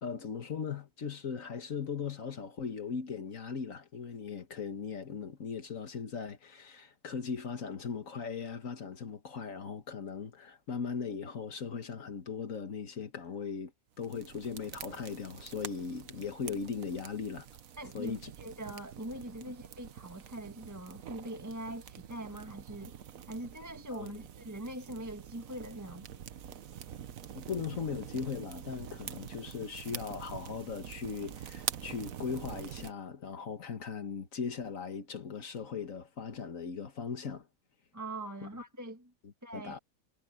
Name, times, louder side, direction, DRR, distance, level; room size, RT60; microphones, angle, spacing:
voice 1, 0.0-13.7 14.0-17.5 17.9-18.3 19.4-19.5 23.9-24.1 27.3-37.5 39.2-39.8, left 6 dB, 70° left, 1.8 m, -39 dB
sound 1, 14.0-32.9, right 9 dB, 75° right, 1.4 m, -45 dB
voice 2, 17.8-22.9 23.3-26.2 37.9-39.1 39.4-39.8, right 1 dB, 15° right, 1.6 m, -42 dB
omnidirectional pair, 1.4 m